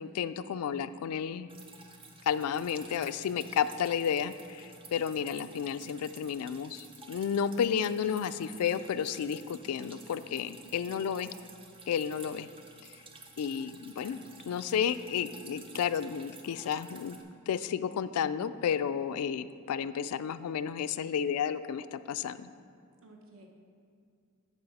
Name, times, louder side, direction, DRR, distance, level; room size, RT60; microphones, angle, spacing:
voice 1, 0.0-1.5 2.3-11.3 11.9-12.5 13.4-17.2 17.5-22.5, left 8 dB, 80° left, 14 dB, 0.3 m, -32 dB
Drip, 1.5-17.2, right 3 dB, 25° right, 0.6 m, -52 dB
voice 2, 10.6-11.4 23.0-23.5, right 2 dB, 65° right, 1 dB, 1.0 m, -55 dB
12.0 x 4.7 x 4.1 m, 2.3 s
head